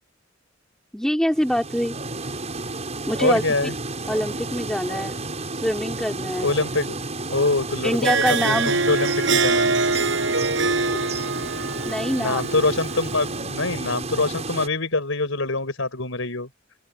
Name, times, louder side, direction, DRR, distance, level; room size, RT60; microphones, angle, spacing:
voice 1, 0.9-1.9 3.1-3.4 4.1-5.2 5.6-6.5 7.8-8.7 11.8-12.4, equal, 5° left, 2.6 m, -24 dB
sound 1, 1.3-14.7, right 3 dB, 35° right, 6.5 m, -32 dB
voice 2, 3.2-3.7 6.4-7.0 7.3-8.1 8.4-9.7 12.2-16.5, left 3 dB, 80° left, 5.3 m, -24 dB
Harp, 7.9-13.3, right 4 dB, 70° right, 5.0 m, -24 dB
open air
head